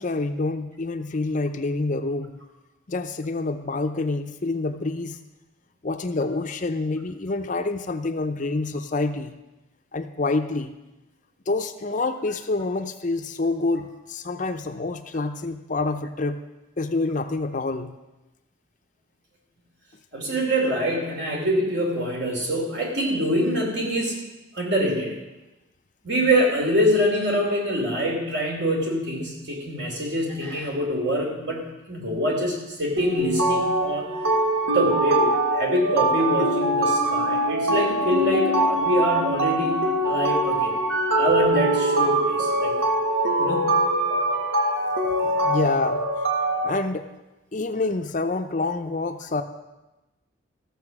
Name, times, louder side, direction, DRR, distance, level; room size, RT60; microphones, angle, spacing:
voice 1, 0.0-2.3 2.9-5.2 5.8-9.4 9.9-10.7 11.5-16.4 16.8-18.0 45.2-46.1 46.6-47.1 47.5-49.4, left 3 dB, 40° left, 8 dB, 0.6 m, -27 dB
voice 2, 20.1-24.2 24.5-25.2 26.0-34.1 34.7-40.7 41.2-42.7 43.4-43.7, equal, 60° right, 0 dB, 3.0 m, -25 dB
sound 1, 33.0-46.7, right 1 dB, 90° right, 1.6 m, -23 dB
14.0 x 7.0 x 6.0 m, 1.0 s
head